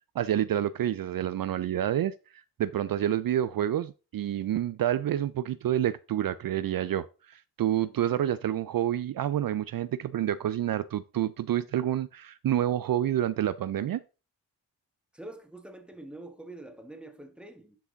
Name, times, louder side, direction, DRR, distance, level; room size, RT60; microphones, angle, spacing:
voice 1, 0.2-14.0, right 11 dB, 60° right, 0.5 m, -28 dB
voice 2, 15.1-17.8, right 2 dB, ahead, 1.7 m, -46 dB
10.0 x 4.9 x 3.8 m
cardioid pair, 60°, 39 cm